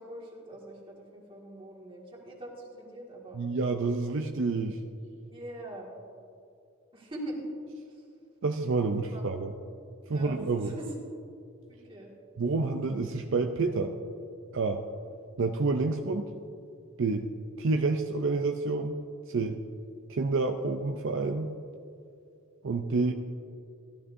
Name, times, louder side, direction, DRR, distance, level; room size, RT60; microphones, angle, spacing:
voice 1, 0.0-3.4 5.2-5.9 6.9-7.4 9.1-9.4 10.1-10.9 11.7-12.1, right 1 dB, 25° right, -3 dB, 2.0 m, -43 dB
voice 2, 3.3-4.8 8.4-9.5 10.1-10.7 12.4-13.9 14.5-14.8 15.4-16.3 17.0-17.3 17.6-19.0 19.3-19.6 20.1-21.5 22.6-23.1, right 3 dB, 65° right, 5 dB, 0.5 m, -28 dB
15.0 x 12.5 x 2.7 m, 2.5 s
head